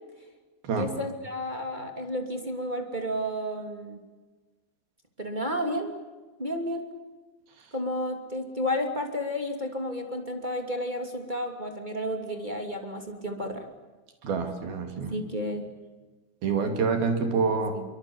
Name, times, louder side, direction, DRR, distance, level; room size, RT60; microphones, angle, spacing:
voice 1, 0.7-4.0 5.2-5.9 6.4-6.8 7.7-13.7 15.1-15.6 17.7-17.8, equal, 15° right, 5 dB, 1.5 m, -31 dB
voice 2, 14.2-15.1 16.4-17.7, right 5 dB, 55° right, 6 dB, 4.3 m, -26 dB
27.5 x 24.0 x 7.2 m, 1.3 s
omnidirectional pair, 5.4 m